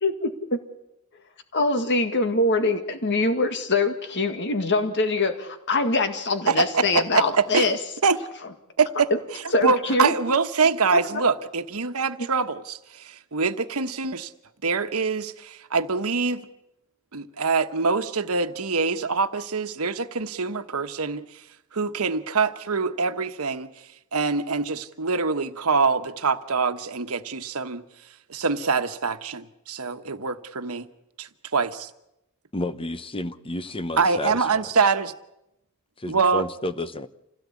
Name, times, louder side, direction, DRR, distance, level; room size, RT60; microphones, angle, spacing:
voice 1, 0.0-0.6 1.5-7.8 9.1-9.2 9.5-10.1 10.9-11.0 12.2-12.3, left 2 dB, 55° left, 2.0 m, -23 dB
voice 2, 6.5-7.7 8.0-8.2 8.8-14.3 14.6-16.4 17.1-21.4 21.7-23.7 24.1-27.8 28.3-30.9 31.2-31.9 34.0-35.1 36.1-36.4, right 4 dB, 85° right, 1.2 m, -24 dB
voice 3, 32.5-34.4 36.0-37.1, left 1 dB, 25° left, 0.9 m, -31 dB
27.0 x 17.0 x 8.4 m
head